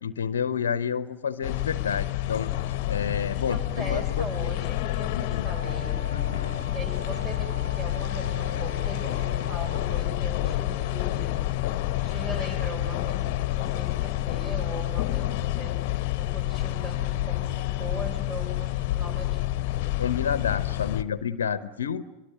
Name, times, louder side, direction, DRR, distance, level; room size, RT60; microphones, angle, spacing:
voice 1, 0.0-4.2 5.1-5.5 6.1-6.6 20.0-22.0, left 7 dB, 65° left, 14 dB, 0.9 m, -30 dB
sound 1, 1.4-21.0, left 15 dB, 45° left, 1.1 m, -28 dB
voice 2, 3.3-6.0 6.7-11.4 12.0-15.7 16.2-19.6, right 1 dB, 20° right, 8 dB, 5.3 m, -39 dB
Wind instrument woodwind instrument, 5.5-10.2, left 1 dB, 75° right, 3.3 m, -42 dB
26.0 x 23.0 x 9.2 m, 1.0 s
figure-of-eight pair, 90°, 0 cm